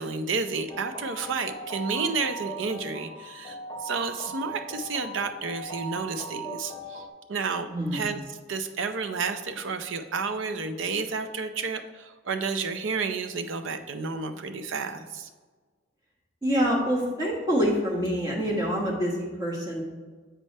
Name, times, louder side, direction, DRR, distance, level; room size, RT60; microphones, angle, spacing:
voice 1, 0.0-8.2 8.5-15.3, right 4 dB, 75° right, 9 dB, 0.5 m, -31 dB
sound 1, 0.7-7.1, right 2 dB, 20° left, 0.6 m, -39 dB
voice 2, 7.7-8.1 16.4-19.8, equal, 20° right, -4 dB, 1.4 m, -26 dB
7.5 x 3.3 x 5.3 m, 1.4 s
head